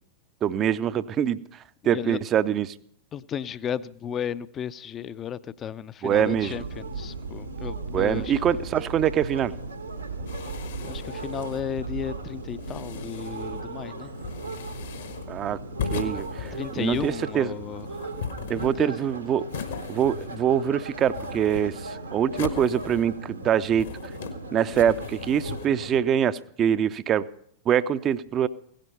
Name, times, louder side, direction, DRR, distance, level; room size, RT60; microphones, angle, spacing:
voice 1, 0.4-1.4 1.8-2.7 6.0-6.6 7.9-9.5 15.3-15.6 15.9-17.5 18.5-19.5 19.9-23.9 24.5-27.3 27.7-28.5, right 9 dB, 30° right, 15 dB, 0.5 m, -24 dB
voice 2, 1.8-2.2 3.1-8.4 10.8-14.1 16.5-18.1 18.6-18.9, left 8 dB, 25° left, 16 dB, 0.5 m, -34 dB
sound 1, 6.0-26.0, right 3 dB, 85° right, 1.6 m, -37 dB
sound 2, 10.3-11.8 12.5-13.7 14.2-15.3 15.8-17.3 17.8-19.0 19.5-20.6 20.9-21.9 22.3-23.3 23.6-24.4 24.7-25.7, left 6 dB, 65° left, 1.3 m, -37 dB
16.5 x 10.5 x 5.4 m, 0.67 s
figure-of-eight pair, 90°, 0 cm